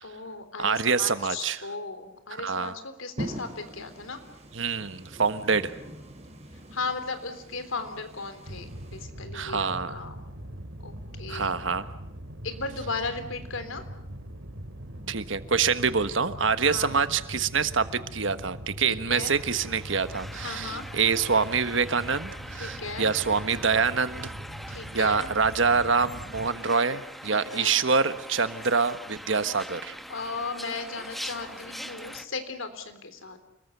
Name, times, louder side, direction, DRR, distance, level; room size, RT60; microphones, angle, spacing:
voice 1, 0.0-4.2 6.7-10.2 10.8-10.9 11.2-11.6 12.4-13.8 16.6-16.9 18.8-19.3 20.4-20.9 22.5-23.1 24.7-25.3 27.3-27.8 30.1-33.4, left 4 dB, 85° left, 9 dB, 3.5 m, -36 dB
voice 2, 0.6-1.6 2.3-2.7 4.5-5.7 9.3-10.0 11.3-11.9 15.1-24.3 24.9-29.9, right 5 dB, 65° right, 11 dB, 1.4 m, -26 dB
sound 1, 3.2-9.0, right 1 dB, 35° right, 4.9 m, -42 dB
sound 2, 8.4-26.5, equal, 85° right, 2.9 m, -41 dB
sound 3, 19.2-32.3, equal, ahead, 1.1 m, -42 dB
29.0 x 20.5 x 8.1 m, 0.82 s
head